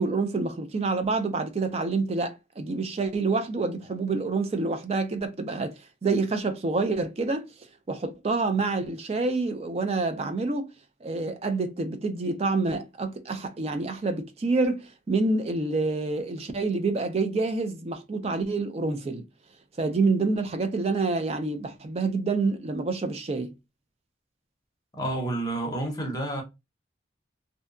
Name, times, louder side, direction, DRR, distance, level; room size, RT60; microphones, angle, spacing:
voice 1, 0.0-7.5 7.9-10.7 11.0-19.2 19.8-23.5, right 3 dB, 35° right, 0.4 m, -27 dB
voice 2, 25.0-26.4, right 1 dB, 20° left, 0.7 m, -29 dB
2.6 x 2.2 x 2.4 m
head